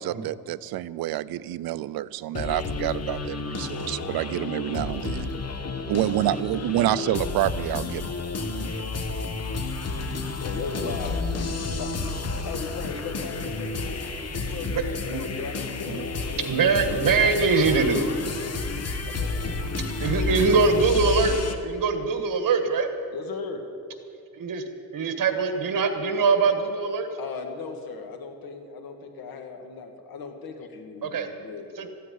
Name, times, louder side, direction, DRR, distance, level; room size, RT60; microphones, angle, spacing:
voice 1, 0.0-5.3 5.9-8.1, right 14 dB, 90° right, 17 dB, 0.5 m, -28 dB
sound 1, 2.3-21.6, left 3 dB, 45° left, 1.3 m, -31 dB
voice 2, 6.7-7.2 10.0-11.5 11.8-17.3 19.0-19.6 20.0-20.3 23.1-23.6 27.2-31.7, left 4 dB, 85° left, 5 dB, 1.9 m, -38 dB
voice 3, 14.7-15.3 15.9-16.0 16.5-18.1 20.0-22.9 24.3-24.6 24.9-27.1 31.0-31.3 31.8-31.9, right 4 dB, 65° right, 7 dB, 1.8 m, -23 dB
14.5 x 9.4 x 9.4 m, 2.5 s
cardioid pair, 105°, 35 cm